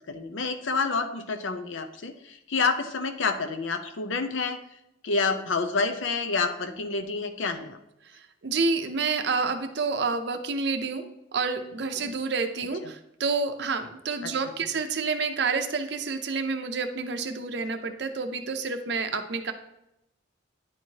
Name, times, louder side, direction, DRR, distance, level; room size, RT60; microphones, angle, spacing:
voice 1, 0.1-4.6 5.0-7.8 12.8-12.9 14.2-14.3, left 4 dB, 75° left, 8 dB, 0.6 m, -28 dB
voice 2, 8.1-11.1 11.3-19.5, right 4 dB, 60° right, 7 dB, 0.6 m, -29 dB
9.9 x 4.6 x 2.8 m, 0.87 s
head